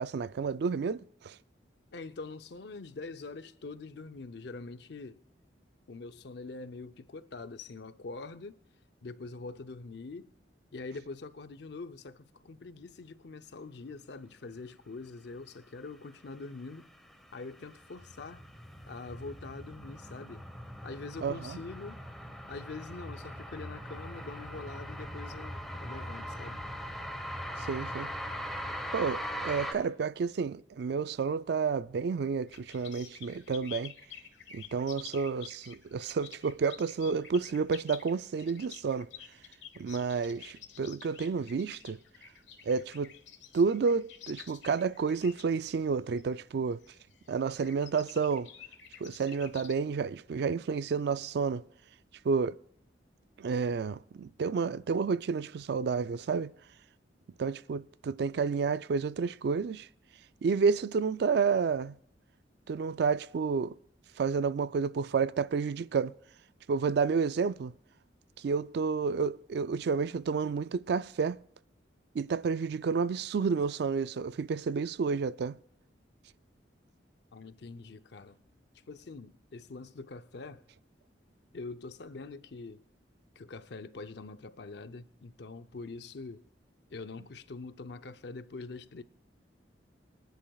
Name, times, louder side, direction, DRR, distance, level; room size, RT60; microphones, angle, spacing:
voice 1, 0.0-1.4 21.2-21.6 27.6-28.1 28.9-33.9 34.5-39.1 39.8-42.0 42.6-43.1 43.5-46.8 47.3-48.5 49.0-51.6 52.2-52.6 53.4-56.5 57.4-59.9 60.4-62.0 62.7-63.7 64.2-66.1 66.7-67.7 68.4-71.4 72.1-75.6, right 5 dB, 60° right, 0.3 m, -30 dB
voice 2, 1.9-5.2 5.9-8.6 9.0-10.3 10.7-16.9 17.3-18.4 18.9-20.5 20.8-22.0 22.5-26.6 77.3-78.4 78.9-80.7 81.5-82.8 83.4-86.5 86.9-89.0, left 3 dB, 65° left, 0.6 m, -44 dB
sound 1, 16.9-29.7, equal, ahead, 1.1 m, -40 dB
sound 2, 32.5-49.7, left 9 dB, 80° left, 1.1 m, -50 dB
24.5 x 10.5 x 2.3 m
head